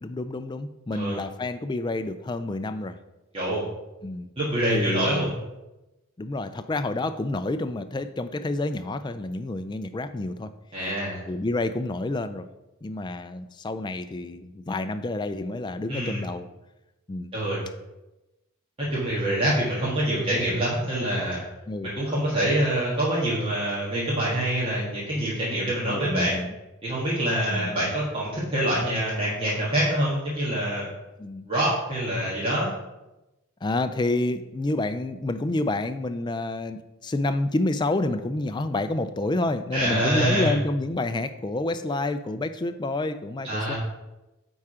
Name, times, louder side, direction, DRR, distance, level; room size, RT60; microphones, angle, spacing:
voice 1, 0.0-3.0 4.0-4.3 4.7-5.3 6.2-10.5 11.3-12.5 12.8-16.5 17.1-17.4 21.7-21.9 25.9-26.5 27.5-27.7 31.2-31.4 33.6-43.7, left 2 dB, 20° left, 10 dB, 0.3 m, -29 dB
voice 2, 3.3-3.6 4.4-5.3 10.7-11.2 15.9-16.2 17.3-17.6 18.8-21.4 21.8-26.4 26.8-30.9 31.5-32.7 39.7-40.5 43.4-43.7, right 1 dB, 25° right, -7 dB, 1.5 m, -25 dB
8.8 x 3.6 x 4.9 m, 1.0 s
head